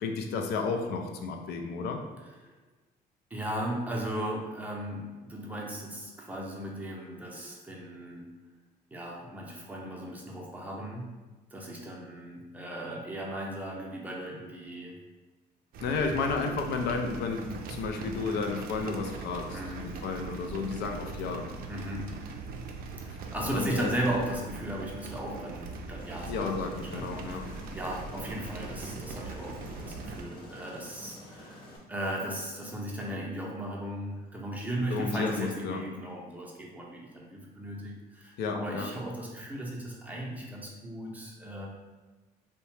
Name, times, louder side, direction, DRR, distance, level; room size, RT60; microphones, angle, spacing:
voice 1, 0.0-2.0 15.8-21.5 23.2-23.9 26.3-27.4 34.9-35.8 38.4-38.9, left 4 dB, 75° left, 3 dB, 0.4 m, -32 dB
voice 2, 3.3-8.2 8.9-11.1 11.5-15.0 19.5-19.9 21.7-22.1 23.0-41.7, right 1 dB, 10° right, -3 dB, 0.6 m, -36 dB
sound 1, 15.7-30.2, right 4 dB, 60° right, 0.4 m, -41 dB
Aircraft, 26.0-31.8, left 1 dB, 30° left, 0.6 m, -48 dB
2.8 x 2.1 x 3.1 m, 1.2 s
cardioid pair, 110°, 17 cm